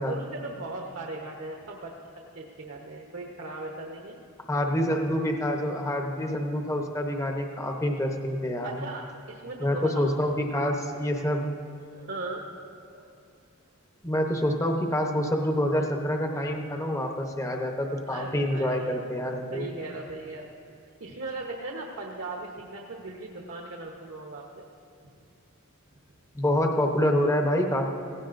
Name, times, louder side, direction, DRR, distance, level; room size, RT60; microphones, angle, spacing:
voice 1, 0.0-1.9 2.3-4.2 8.6-10.1 12.0-12.4 12.9-13.1 18.1-18.9 19.5-20.5 21.0-24.7, right 2 dB, 65° right, 0 dB, 1.0 m, -38 dB
voice 2, 4.5-8.8 9.6-11.6 14.0-19.7 26.3-27.8, equal, 15° left, 2 dB, 0.8 m, -27 dB
17.0 x 16.5 x 2.6 m, 2.4 s
head